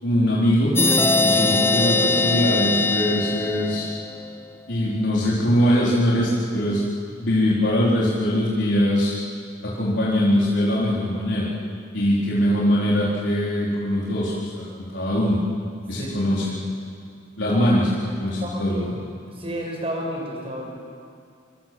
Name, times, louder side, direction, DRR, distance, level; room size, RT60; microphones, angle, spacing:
voice 1, 0.0-0.7 1.2-3.9 4.7-6.8 7.2-9.1 9.6-11.5 11.9-15.4 15.9-16.6 17.4-17.9 18.2-19.0, equal, 75° left, -7 dB, 4.3 m, -22 dB
sound 1, 0.8-4.3, left 3 dB, 15° left, 0.9 m, -21 dB
voice 2, 18.4-18.8 19.4-20.7, equal, 35° right, 0 dB, 6.3 m, -31 dB
25.5 x 25.0 x 7.8 m, 2.4 s
head